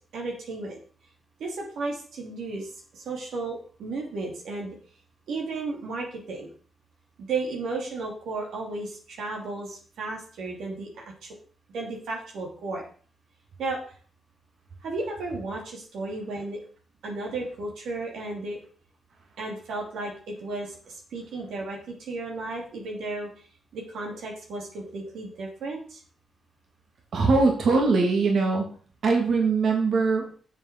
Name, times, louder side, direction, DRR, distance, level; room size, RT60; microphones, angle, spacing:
voice 1, 0.1-0.8 1.4-4.8 5.3-6.5 7.3-11.0 11.7-12.8 13.6-13.8 14.8-16.6 17.0-18.6 19.4-23.3 23.7-26.0, right 3 dB, 90° right, -1 dB, 2.9 m, -34 dB
voice 2, 27.1-28.7 29.0-30.4, right 4 dB, 65° right, 1 dB, 2.7 m, -22 dB
7.8 x 7.0 x 6.2 m, 0.42 s
cardioid pair, 100°, 0 cm